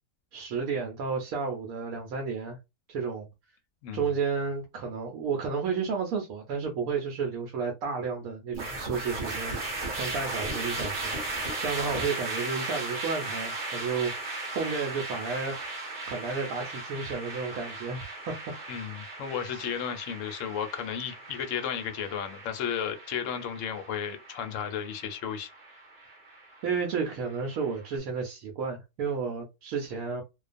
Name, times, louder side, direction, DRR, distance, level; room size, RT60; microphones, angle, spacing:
voice 1, 0.3-2.6 2.9-3.3 3.9-9.6 9.9-15.7 16.1-18.3 26.6-30.2, right 5 dB, 75° right, 1.0 m, -32 dB
sound 1, 8.5-27.8, right 2 dB, 45° right, 0.8 m, -37 dB
voice 2, 18.7-25.5, left 8 dB, 70° left, 0.8 m, -34 dB
2.4 x 2.2 x 2.4 m
omnidirectional pair, 1.5 m